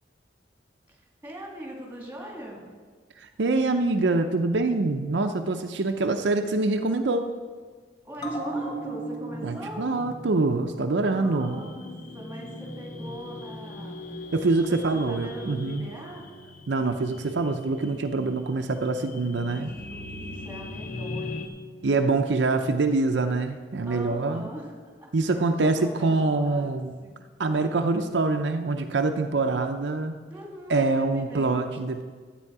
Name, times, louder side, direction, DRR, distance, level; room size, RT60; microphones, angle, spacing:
voice 1, 0.9-2.7 8.0-9.9 11.1-14.1 14.9-16.3 19.0-19.5 19.9-21.8 23.8-24.7 25.0-26.7 27.0-27.2 30.3-31.7, right 1 dB, 10° right, -1 dB, 2.5 m, -41 dB
voice 2, 3.2-7.3 9.4-11.7 14.3-15.9 16.7-19.7 21.8-24.5 25.1-27.0 27.4-30.1 30.7-32.0, right 3 dB, 80° right, 6 dB, 0.6 m, -25 dB
sound 1, 8.2-15.1 15.4-15.5, right 1 dB, 25° left, 1.6 m, -38 dB
sound 2, 11.4-21.5, left 2 dB, 50° left, 0.7 m, -40 dB
12.5 x 8.4 x 4.8 m, 1.5 s
head